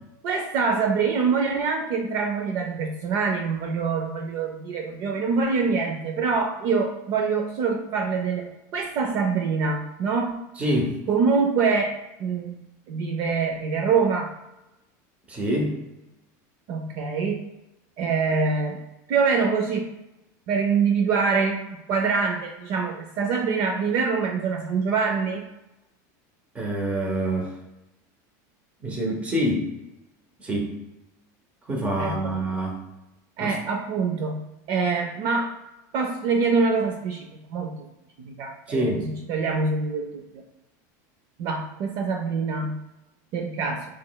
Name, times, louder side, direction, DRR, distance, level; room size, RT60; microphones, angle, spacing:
voice 1, 0.2-10.4 11.1-12.5 12.9-14.3 16.7-17.4 18.0-18.8 19.1-19.9 20.5-25.4 32.0-32.3 33.4-34.4 34.7-35.5 35.9-37.7 38.2-40.4 41.4-42.8 43.3-43.9, right 5 dB, 45° right, 2 dB, 0.5 m, -25 dB
voice 2, 10.6-11.0 15.3-15.8 26.5-27.5 28.8-29.7 30.4-30.7 31.7-32.7 33.4-33.6 38.7-39.0, right 1 dB, 15° right, 0 dB, 0.8 m, -26 dB
5.9 x 3.1 x 2.3 m, 0.94 s
supercardioid pair, 160°, 10 cm